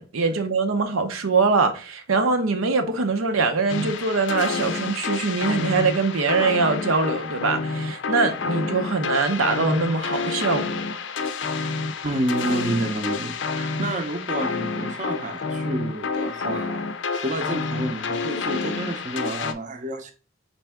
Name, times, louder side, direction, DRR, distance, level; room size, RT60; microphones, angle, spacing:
voice 1, 0.0-10.8, right 4 dB, 90° right, 0.7 m, -23 dB
sound 1, 3.7-19.5, left 4 dB, 60° left, 0.5 m, -29 dB
voice 2, 12.0-16.9 17.1-20.1, right 1 dB, 35° right, 0.6 m, -29 dB
4.2 x 3.4 x 3.5 m
head